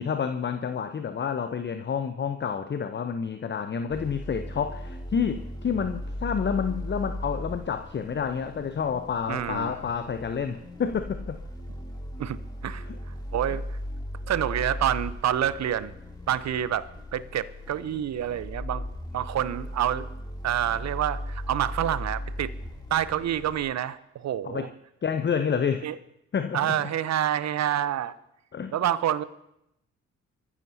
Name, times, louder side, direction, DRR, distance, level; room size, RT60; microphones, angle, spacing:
voice 1, 0.0-11.4 12.8-13.0 24.4-24.7 25.0-25.9 26.3-26.7 28.5-28.8, left 6 dB, 30° left, 9 dB, 0.8 m, -29 dB
sound 1, 3.9-23.6, equal, 10° left, 2.8 m, -37 dB
voice 2, 9.3-9.7 12.2-12.9 13.3-13.8 14.3-15.9 16.3-18.9 19.1-20.1 20.4-22.5 22.9-24.7 25.8-25.9 26.5-28.1 28.7-29.2, right 10 dB, 45° right, 17 dB, 0.8 m, -27 dB
27.0 x 14.5 x 2.8 m, 0.82 s
figure-of-eight pair, 40°, 36 cm